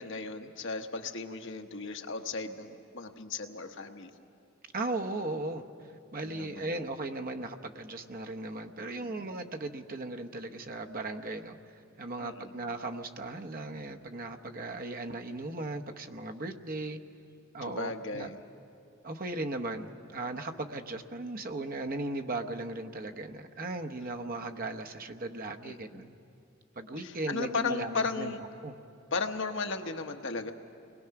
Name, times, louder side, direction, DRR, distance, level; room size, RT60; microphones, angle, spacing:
voice 1, 0.0-4.1 6.2-6.8 8.9-9.1 12.2-12.5 17.6-18.4 25.6-26.0 27.0-28.4 29.1-30.5, left 4 dB, 60° left, 6 dB, 1.1 m, -36 dB
voice 2, 4.7-17.0 17.5-18.3 19.0-26.2 26.8-28.3 28.6-28.7, right 2 dB, 45° right, 5 dB, 0.9 m, -37 dB
29.5 x 21.0 x 5.9 m, 2.6 s
head